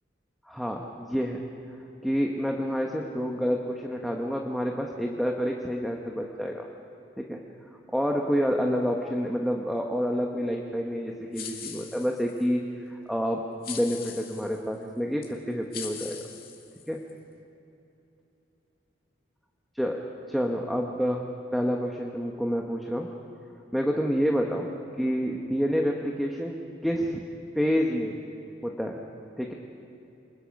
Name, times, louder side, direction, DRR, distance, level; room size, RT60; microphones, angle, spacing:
voice 1, 0.5-1.4 2.0-6.7 7.2-7.4 7.9-12.6 12.9-13.4 13.7-16.2 16.9-17.0 19.7-20.0 20.3-21.3 21.5-23.1 23.7-24.7 25.0-26.6 26.8-27.2 27.5-28.2 28.6-29.0 29.4-29.5, equal, ahead, 0 dB, 1.2 m, -28 dB
sound 1, 11.3-12.5 13.6-14.6 15.2-15.3 15.7-17.1, left 8 dB, 50° left, 2.5 m, -41 dB
26.0 x 21.0 x 5.3 m, 2.9 s
head